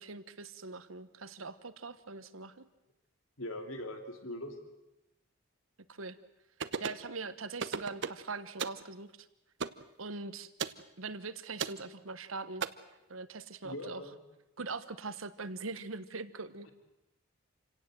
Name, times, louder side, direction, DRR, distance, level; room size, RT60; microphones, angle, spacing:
voice 1, 0.0-2.7 5.9-6.2 6.8-9.3 10.0-10.5 11.0-12.6 13.1-14.0 14.6-16.7, right 3 dB, 75° right, 13 dB, 1.3 m, -42 dB
voice 2, 3.4-4.6 13.6-14.2, left 1 dB, 80° left, 6 dB, 2.9 m, -41 dB
sound 1, 6.6-7.1 7.6-8.2 8.6-8.8 9.6-9.8 10.6-10.8 11.6-11.8 12.6-12.7, right 6 dB, 60° right, 0.9 m, -35 dB
28.0 x 17.5 x 7.8 m, 0.94 s
head